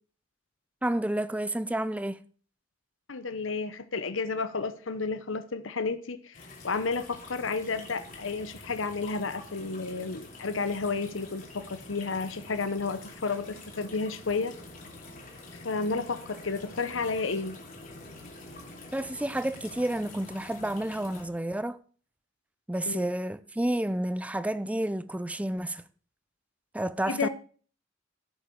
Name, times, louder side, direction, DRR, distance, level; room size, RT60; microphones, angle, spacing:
voice 1, 0.8-2.2 18.9-21.8 22.7-25.8 26.7-27.3, right 1 dB, 5° right, 0.5 m, -30 dB
voice 2, 3.1-6.4 6.6-14.6 15.5-17.6 22.9-23.0 27.1-27.3, left 4 dB, 85° left, 0.9 m, -31 dB
sound 1, 6.3-21.3, left 2 dB, 45° left, 3.2 m, -47 dB
16.0 x 8.1 x 4.7 m
head